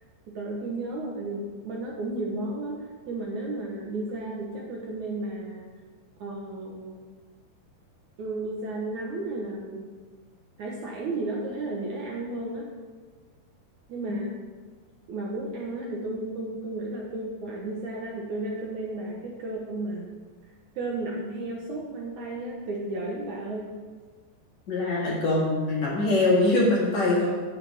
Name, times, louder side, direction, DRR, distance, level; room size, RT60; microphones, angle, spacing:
voice 1, 0.3-5.6 6.2-7.0 8.2-9.9 10.6-12.7 13.9-14.4 15.1-20.1 20.8-23.7, right 2 dB, 70° right, -2 dB, 1.9 m, -33 dB
voice 2, 24.7-27.3, left 2 dB, 50° left, -5 dB, 2.8 m, -23 dB
14.0 x 7.8 x 3.6 m, 1.4 s
omnidirectional pair, 5.1 m